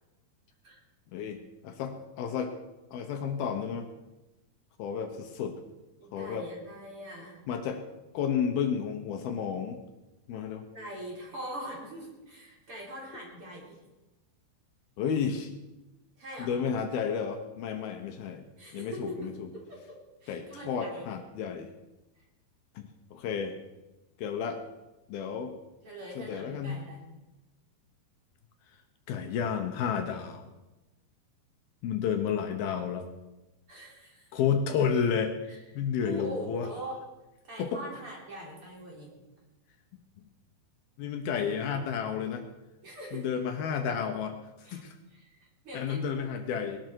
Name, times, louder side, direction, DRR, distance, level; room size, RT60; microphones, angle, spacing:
voice 1, 1.6-2.5 2.9-3.9 4.8-5.6 6.1-6.5 7.5-7.8 8.1-9.8 10.3-10.6 15.0-15.5 16.4-18.4 18.7-19.3 20.3-21.7 22.8-23.6 24.2-24.6 25.1-25.5 26.2-26.8 29.1-30.5 31.8-33.1 34.3-36.7 37.6-37.8 41.0-42.4 43.1-44.9 45.7-46.8, left 7 dB, 75° left, 5 dB, 2.8 m, -31 dB
voice 2, 6.0-7.4 10.7-13.8 16.2-16.6 18.6-21.2 22.2-22.3 25.8-27.0 33.7-34.4 35.5-35.6 36.0-37.0 37.4-39.1 42.8-43.3 44.6-44.8 45.1-45.4 45.6-46.0, right 1 dB, 35° right, -2 dB, 4.2 m, -42 dB
20.0 x 13.0 x 4.7 m, 1.0 s
omnidirectional pair, 4.7 m